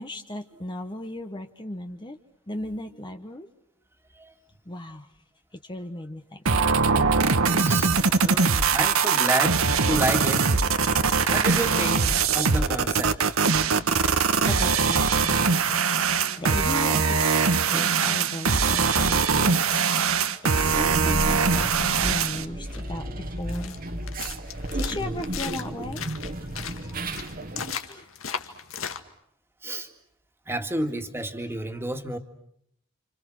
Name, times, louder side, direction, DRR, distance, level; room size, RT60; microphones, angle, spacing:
voice 1, 0.0-2.2 2.5-3.5 4.6-5.1 5.5-6.7 14.5-23.8 24.7-26.0 27.9-28.1, left 1 dB, 20° left, 6 dB, 1.1 m, -37 dB
sound 1, 6.5-22.5, right 5 dB, 80° right, 1.4 m, -22 dB
voice 2, 7.5-9.6 9.9-10.5 11.3-13.2 26.8-27.0 27.7-27.8 29.6-29.9 30.5-32.2, right 1 dB, 10° right, 5 dB, 2.2 m, -30 dB
sound 2, 20.6-27.8, right 1 dB, 45° right, 1.6 m, -33 dB
sound 3, 22.7-29.0, left 7 dB, 70° left, 2.0 m, -37 dB
29.5 x 28.0 x 6.3 m, 0.71 s
head